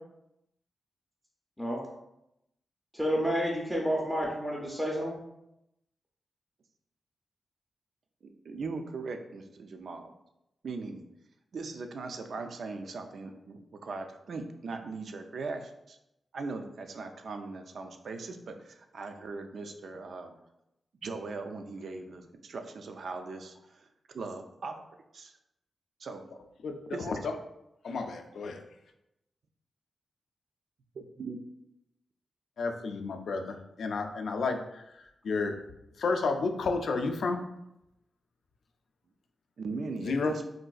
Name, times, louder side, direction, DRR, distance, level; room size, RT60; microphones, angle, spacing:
voice 1, 2.9-5.2, equal, 5° left, -3 dB, 0.5 m, -30 dB
voice 2, 8.2-10.1 10.6-11.0 11.5-16.0 16.3-20.3 21.0-23.9 24.1-24.7 25.1-25.3 26.0-26.4 26.9-27.2 30.9-31.4 39.6-40.4, right 3 dB, 65° right, 6 dB, 0.3 m, -39 dB
voice 3, 26.6-27.3 27.8-28.6 32.6-34.8 35.2-35.5 36.0-37.4 40.0-40.3, left 4 dB, 75° left, 5 dB, 0.3 m, -31 dB
3.8 x 2.5 x 2.3 m, 0.85 s
wide cardioid pair, 120°, 0 cm